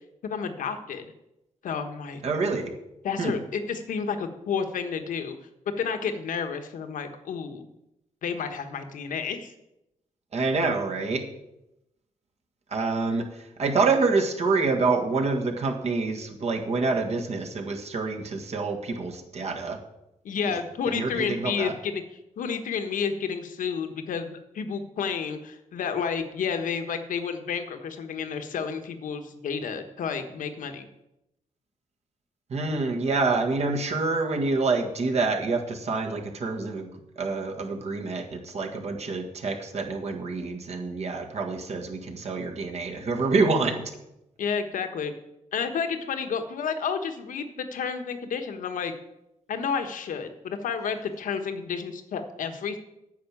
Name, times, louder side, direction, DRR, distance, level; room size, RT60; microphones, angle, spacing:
voice 1, 0.2-1.1 1.6-2.2 3.0-5.4 5.8-7.6 8.2-9.5 20.2-22.0 22.4-30.9 44.4-45.1 45.5-48.9 49.5-52.8, left 6 dB, 80° left, 7 dB, 1.3 m, -31 dB
voice 2, 2.2-2.6 3.2-3.3 10.3-11.2 12.7-13.3 13.6-19.8 20.5-20.6 20.9-21.7 32.5-36.9 37.2-43.8, right 3 dB, 55° right, 3 dB, 1.8 m, -27 dB
9.4 x 6.0 x 8.5 m, 0.88 s
cardioid pair, 100°, 13 cm